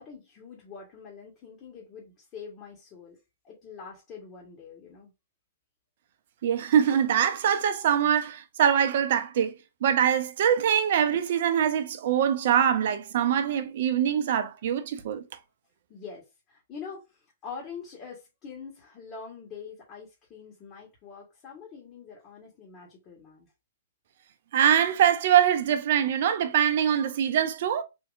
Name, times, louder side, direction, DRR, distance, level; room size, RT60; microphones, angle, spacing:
voice 1, 0.0-3.2 3.4-5.1 15.9-23.5, left 6 dB, 35° left, 1.5 m, -44 dB
voice 2, 6.4-9.5 9.8-15.3 24.5-27.8, right 9 dB, 60° right, 0.6 m, -23 dB
3.6 x 2.8 x 2.5 m
hypercardioid pair, 120°, 0 cm